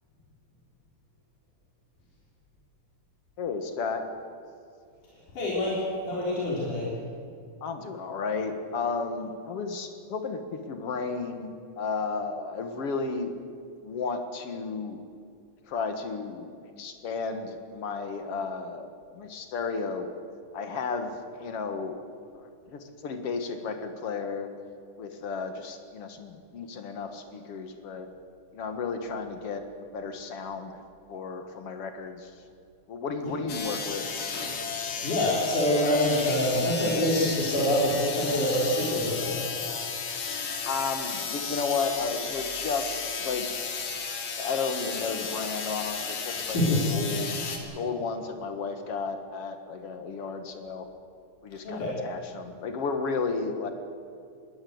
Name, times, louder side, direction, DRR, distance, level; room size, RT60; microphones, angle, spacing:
voice 1, 3.4-4.1 7.6-13.3 13.8-15.0 15.7-18.9 19.1-20.1 20.5-22.0 22.3-24.5 25.0-28.1 28.5-29.6 29.9-30.8 31.1-32.3 32.9-34.1 40.6-43.5 44.4-47.4 47.7-50.9 51.4-53.7, left 4 dB, 55° left, 7 dB, 2.4 m, -33 dB
voice 2, 5.4-6.9 33.2-33.3 34.7-39.4 46.3-46.9 51.6-52.0, left 1 dB, 85° left, -5 dB, 5.2 m, -26 dB
sound 1, 33.5-47.6, left 5 dB, 70° left, 3.5 m, -33 dB
21.0 x 18.0 x 8.0 m, 2.4 s
omnidirectional pair, 3.4 m